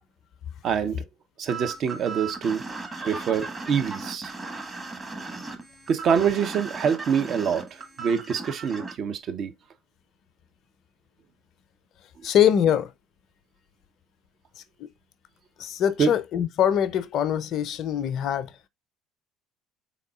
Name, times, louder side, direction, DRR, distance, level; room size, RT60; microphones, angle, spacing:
voice 1, 0.6-1.0 1.4-2.7 3.0-4.3 5.9-9.5 16.0-16.1, right 7 dB, 50° right, 0.6 m, -25 dB
sound 1, 1.5-8.9, right 3 dB, 25° right, 1.2 m, -36 dB
voice 2, 12.2-12.9 14.8-14.9 15.6-18.5, left 9 dB, 55° left, 0.4 m, -23 dB
4.0 x 3.6 x 2.3 m
hypercardioid pair, 60°, 0 cm